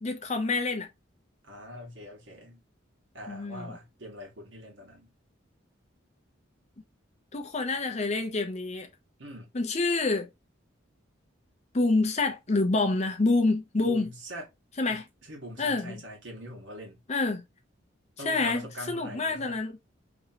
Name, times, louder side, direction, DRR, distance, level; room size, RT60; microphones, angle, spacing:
voice 1, 0.0-0.9 3.3-3.8 7.3-8.9 9.5-10.3 11.7-14.1 14.8-15.0 15.6-16.0 17.1-17.4 18.2-19.7, left 3 dB, 35° left, 0.6 m, -27 dB
voice 2, 1.4-2.6 3.1-5.1 9.2-9.5 13.8-14.5 14.9-17.0 18.2-19.6, equal, 70° right, 1.5 m, -43 dB
3.0 x 2.9 x 2.8 m
head